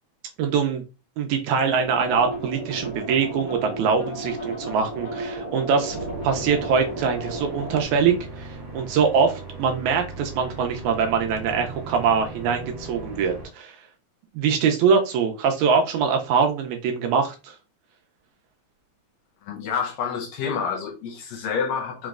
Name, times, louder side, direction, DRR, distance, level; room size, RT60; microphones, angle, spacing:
voice 1, 0.4-0.8 1.2-13.8 14.4-17.5, right 6 dB, 80° right, 1.8 m, -23 dB
sound 1, 1.6-7.8, right 2 dB, 60° right, 1.2 m, -33 dB
sound 2, 2.2-7.2, left 2 dB, 55° left, 1.5 m, -44 dB
sound 3, 5.8-13.4, right 2 dB, 45° right, 2.0 m, -38 dB
voice 2, 19.4-22.1, left 6 dB, 80° left, 1.6 m, -28 dB
5.2 x 3.0 x 2.4 m
omnidirectional pair, 3.5 m